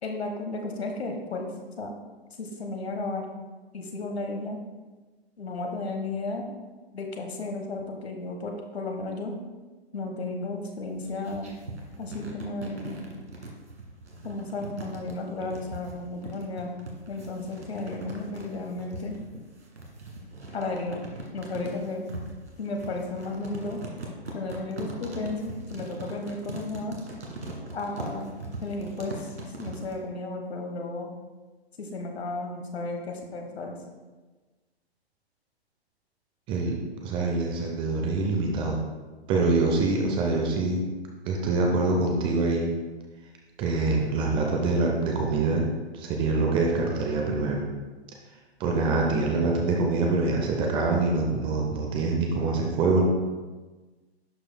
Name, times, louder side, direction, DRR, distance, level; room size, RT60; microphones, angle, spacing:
voice 1, 0.0-1.5 1.8-1.9 2.4-3.3 3.7-4.6 5.4-6.5 6.9-9.3 9.9-11.5 12.0-13.0 14.2-16.7 17.1-19.2 20.5-21.1 21.3-22.0 22.6-23.8 24.3-27.0 27.7-28.3 28.6-31.1 31.8-33.8, left 2 dB, 70° left, 2 dB, 1.3 m, -33 dB
sound 1, 10.9-30.0, right 2 dB, 85° right, 1.8 m, -40 dB
voice 2, 37.0-38.8 39.3-40.8 41.2-42.7 43.6-45.7 45.9-47.7 48.6-53.0, right 3 dB, 15° right, 0 dB, 0.6 m, -25 dB
11.0 x 4.9 x 2.2 m, 1.3 s
figure-of-eight pair, 125°, 33 cm